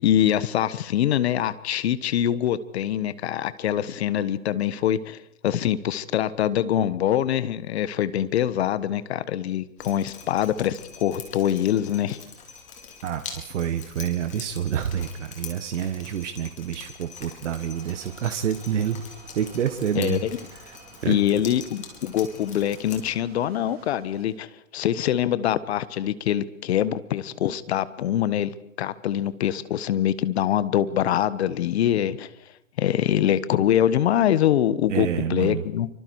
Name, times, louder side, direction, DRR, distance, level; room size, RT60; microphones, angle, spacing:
voice 1, 0.0-5.2 5.4-12.2 19.9-20.3 21.1-32.3 32.8-35.9, left 11 dB, 50° left, 16 dB, 1.5 m, -24 dB
Drip, 9.8-23.0, left 6 dB, 15° left, 4.4 m, -44 dB
voice 2, 13.0-19.0 19.3-20.2 20.7-20.8 21.0-21.2 34.9-35.6, right 9 dB, 60° right, 8 dB, 1.8 m, -28 dB
sound 1, 17.7-24.4, right 5 dB, 20° right, 4.1 m, -51 dB
27.0 x 25.0 x 4.8 m, 0.80 s
hypercardioid pair, 135°, 41 cm